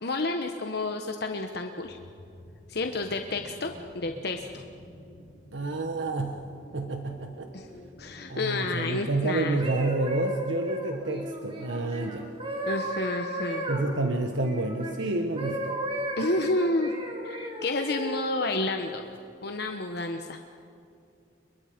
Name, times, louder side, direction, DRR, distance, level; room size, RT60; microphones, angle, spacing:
voice 1, 0.0-2.0 2.7-4.6 7.5-7.7 8.0-9.6 12.7-13.6 16.2-16.9 17.2-19.0 19.4-20.4, left 2 dB, 60° left, 4 dB, 1.2 m, -30 dB
sound 1, 1.8-8.4, equal, 85° left, 5.7 m, -50 dB
voice 2, 5.5-6.4 6.7-7.5 8.3-12.3 13.7-15.8, right 2 dB, 85° right, 5 dB, 1.3 m, -29 dB
sound 2, 9.4-14.9 15.4-18.2 18.9-19.2, right 1 dB, 30° right, 3.1 m, -34 dB
30.0 x 23.5 x 5.2 m, 2.6 s
head